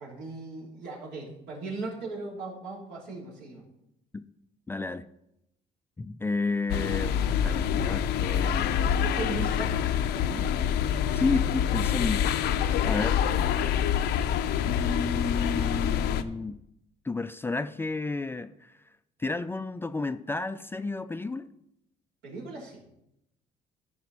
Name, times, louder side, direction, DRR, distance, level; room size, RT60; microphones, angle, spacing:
voice 1, 0.0-3.6 8.9-10.6 22.2-22.8, right 3 dB, 85° right, -4 dB, 3.4 m, -38 dB
voice 2, 4.7-5.1 6.0-8.9 11.1-12.2 12.8-13.2 14.7-16.6 17.0-18.8 19.2-21.5, left 3 dB, 15° left, 12 dB, 0.3 m, -32 dB
sound 1, 6.7-16.2, left 9 dB, 75° left, 0.6 m, -26 dB
14.0 x 5.0 x 4.1 m, 0.82 s
cardioid pair, 110°, 17 cm